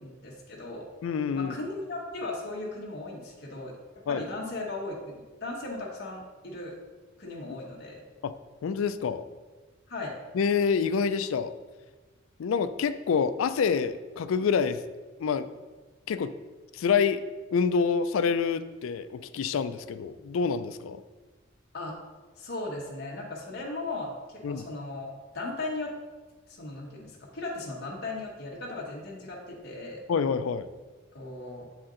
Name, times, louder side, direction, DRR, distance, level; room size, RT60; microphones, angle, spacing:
voice 1, 0.0-0.9 1.3-3.7 4.1-5.1 5.4-6.7 7.2-8.0 9.9-10.1 21.7-22.0 22.4-25.1 25.3-25.9 26.5-30.0 31.1-31.7, left 2 dB, 50° left, -3 dB, 1.1 m, -37 dB
voice 2, 1.0-1.5 4.1-4.2 8.2-8.3 8.6-9.2 10.3-11.5 12.4-14.8 15.2-15.5 16.1-16.3 16.7-17.2 17.5-21.0 24.4-24.7 30.1-30.7, left 6 dB, 75° left, 12 dB, 0.3 m, -27 dB
7.5 x 4.3 x 3.8 m, 1.3 s
head